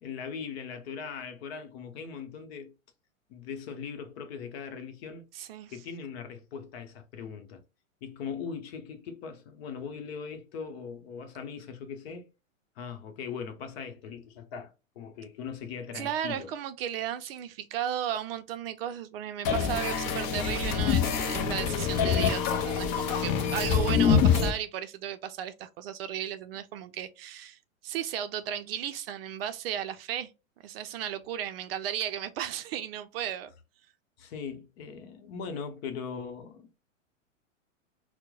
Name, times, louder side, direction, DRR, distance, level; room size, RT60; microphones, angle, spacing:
voice 1, 0.0-2.7 3.3-5.3 5.7-7.6 8.0-12.3 12.8-16.5 34.2-36.8, left 6 dB, 50° left, 0.9 m, -40 dB
voice 2, 5.3-5.7 15.9-30.3 30.6-33.5, right 10 dB, 50° right, 0.5 m, -35 dB
sound 1, 19.4-24.5, left 6 dB, 25° left, 0.4 m, -25 dB
4.4 x 2.1 x 2.3 m
hypercardioid pair, 115°, 40 cm